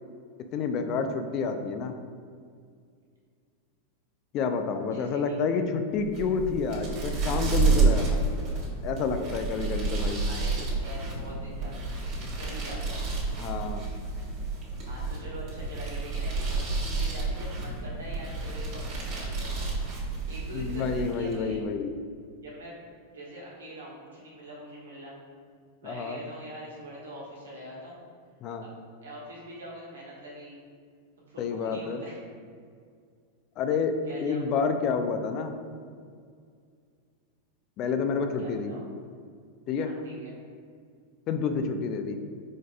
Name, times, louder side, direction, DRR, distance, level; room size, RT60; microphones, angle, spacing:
voice 1, 0.5-1.9 4.3-8.2 8.8-10.2 10.6-10.7 13.4-13.8 20.5-21.9 25.8-26.2 28.4-28.6 31.4-32.0 33.6-35.5 37.8-38.7 39.7-39.9 41.3-42.2, left 5 dB, 45° left, 7 dB, 0.4 m, -29 dB
voice 2, 4.8-5.4 10.3-13.0 14.9-19.7 20.3-21.6 22.4-22.8 23.1-25.2 25.8-28.0 28.6-28.7 29.0-30.6 31.3-32.2 34.1-34.4 38.4-38.8 39.8-40.4, right 1 dB, 80° right, -5 dB, 1.4 m, -43 dB
sound 1, 6.0-21.5, right 3 dB, 50° right, 1.4 m, -30 dB
4.7 x 4.3 x 2.3 m, 2.1 s
hypercardioid pair, 95°, 0 cm